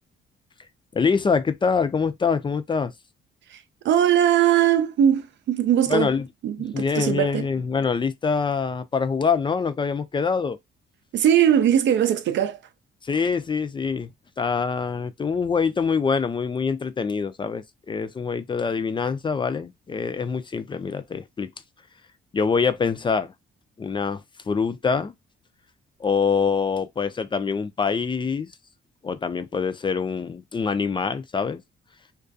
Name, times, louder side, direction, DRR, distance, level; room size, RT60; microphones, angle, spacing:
voice 1, 0.9-2.9 5.9-6.2 6.7-10.6 13.0-14.1 14.4-21.5 22.3-23.3 23.8-24.2 24.5-25.1 26.0-28.5 29.0-31.6, left 5 dB, 25° left, 0.3 m, -25 dB
voice 2, 3.5-6.1 6.4-7.5 11.1-12.6, right 10 dB, 65° right, 0.4 m, -20 dB
2.4 x 2.3 x 2.5 m
cardioid pair, 90°, 20 cm